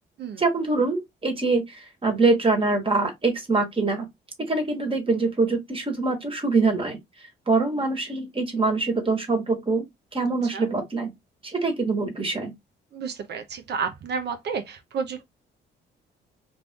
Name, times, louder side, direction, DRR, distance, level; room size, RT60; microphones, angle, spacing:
voice 1, 0.4-4.0 4.5-7.0 7.5-9.8 10.1-11.1 11.4-12.5, right 3 dB, 25° right, 1.3 m, -24 dB
voice 2, 12.9-15.2, right 6 dB, 60° right, 0.6 m, -31 dB
2.6 x 2.4 x 3.4 m
cardioid pair, 90°, 20 cm